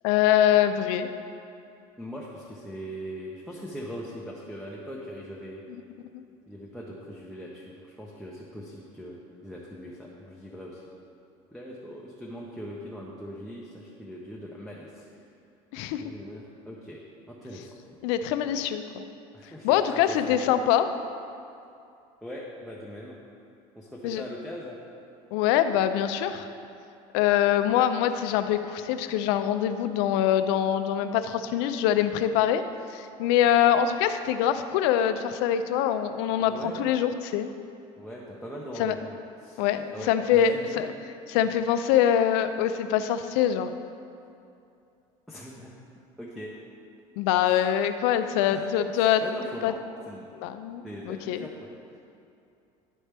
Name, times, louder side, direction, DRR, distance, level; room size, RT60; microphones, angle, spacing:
voice 1, 0.0-1.1 6.1-6.2 15.7-16.1 18.0-19.0 19.6-20.9 24.0-24.2 25.3-26.5 27.1-32.6 32.9-37.5 38.8-39.0 39.6-40.9 41.3-43.7 47.2-49.2 49.6-49.7 50.3-51.5, left 10 dB, 85° left, 10 dB, 0.4 m, -24 dB
voice 2, 2.0-5.6 6.5-10.8 11.5-15.0 16.0-17.0 17.3-17.8 19.3-20.7 22.2-23.2 23.8-24.8 36.4-36.9 38.0-39.6 39.9-40.8 41.4-41.5 45.3-45.7 46.2-46.5 47.5-47.6 48.5-48.6 49.0-49.8 50.1-50.3 50.8-51.7, equal, ahead, -4 dB, 0.5 m, -40 dB
11.5 x 4.3 x 3.4 m, 2.6 s
cardioid pair, 165°, 14 cm